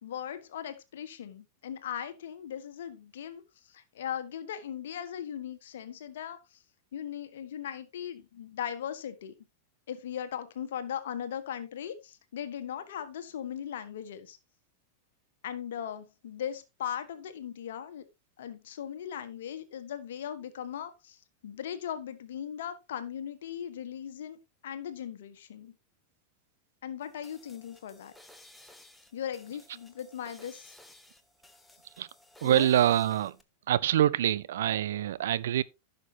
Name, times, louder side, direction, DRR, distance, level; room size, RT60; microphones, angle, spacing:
voice 1, 0.0-6.6 6.9-9.3 9.9-14.4 15.4-18.0 18.4-25.7 26.8-28.1 29.1-30.7 32.4-32.7, left 9 dB, 60° left, 1.4 m, -38 dB
sound 1, 27.0-33.4, left 1 dB, 5° left, 1.2 m, -56 dB
voice 2, 32.4-33.4 33.7-35.6, right 11 dB, 60° right, 0.5 m, -25 dB
15.0 x 6.7 x 2.8 m
figure-of-eight pair, 90°, 0 cm